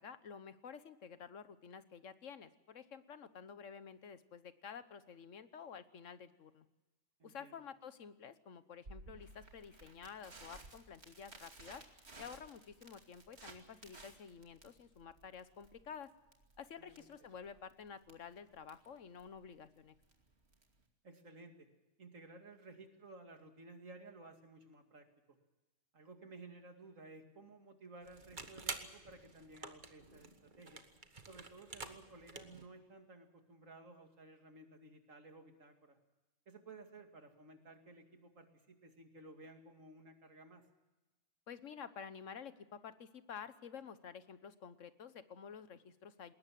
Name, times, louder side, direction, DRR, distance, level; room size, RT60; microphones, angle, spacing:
voice 1, 0.0-6.6 7.2-11.8 12.2-16.1 16.6-19.9 41.5-46.3, left 7 dB, 75° left, 13 dB, 1.4 m, -51 dB
voice 2, 7.2-7.6 16.8-17.1 21.0-21.7 22.0-25.4 25.9-30.8 31.2-36.0 36.5-40.6, right 2 dB, 85° right, 5 dB, 2.8 m, -56 dB
Crackle, 8.9-20.8, right 2 dB, 55° right, 2.9 m, -58 dB
sound 1, 28.0-32.7, right 3 dB, 40° right, 1.6 m, -49 dB
20.5 x 19.0 x 7.6 m, 1.1 s
omnidirectional pair, 1.3 m